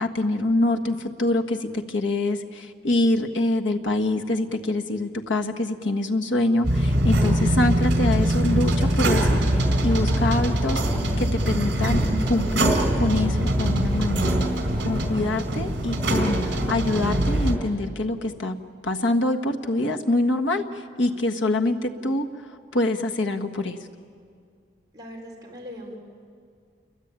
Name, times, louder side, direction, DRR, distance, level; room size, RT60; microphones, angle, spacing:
voice 1, 0.0-10.8 11.2-14.3 14.8-18.6 18.8-22.2 22.7-23.8, left 2 dB, 85° left, 4 dB, 1.6 m, -25 dB
sound 1, 6.6-17.5, right 1 dB, 65° right, 3.7 m, -22 dB
voice 2, 24.9-26.0, equal, 20° right, -3 dB, 4.6 m, -40 dB
29.0 x 22.5 x 9.0 m, 2.2 s
head